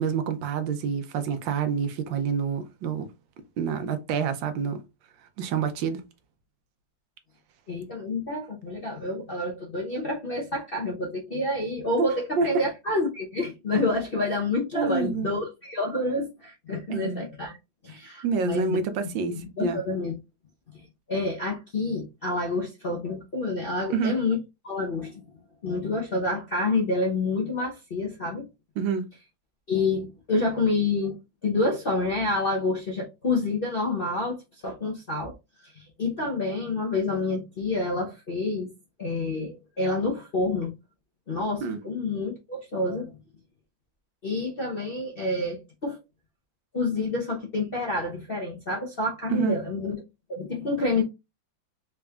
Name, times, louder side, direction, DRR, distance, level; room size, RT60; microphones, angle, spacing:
voice 1, 0.0-3.1 3.6-4.8 5.4-6.0 12.0-12.1 12.4-12.5 14.7-15.3 16.9-17.2 18.2-19.8 23.9-24.1 28.8-29.1 41.6-41.8 49.3-49.6, right 6 dB, 75° right, 1.4 m, -27 dB
voice 2, 7.7-17.6 17.8-18.8 19.4-20.1 20.7-20.8 21.1-24.4 24.6-25.2 25.6-28.4 29.7-31.2 31.4-34.4 34.6-35.3 35.7-38.7 39.0-40.7 41.3-43.2 44.2-46.0 46.7-50.0 50.3-51.0, left 2 dB, 50° left, 0.6 m, -28 dB
4.0 x 3.5 x 2.3 m
omnidirectional pair, 2.1 m